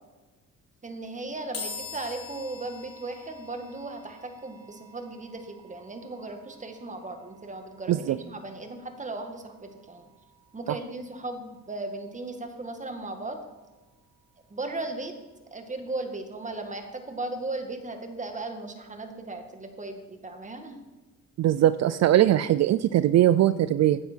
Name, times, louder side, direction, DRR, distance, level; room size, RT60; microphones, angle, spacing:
voice 1, 0.8-10.1 10.5-13.4 14.5-15.2 15.5-20.8, right 2 dB, 25° right, 5 dB, 1.9 m, -37 dB
sound 1, 1.5-14.9, left 4 dB, 50° left, 3.7 m, -47 dB
voice 2, 21.4-24.0, right 12 dB, 60° right, 15 dB, 0.5 m, -21 dB
14.5 x 9.5 x 4.5 m, 1.2 s
cardioid pair, 90°, 30 cm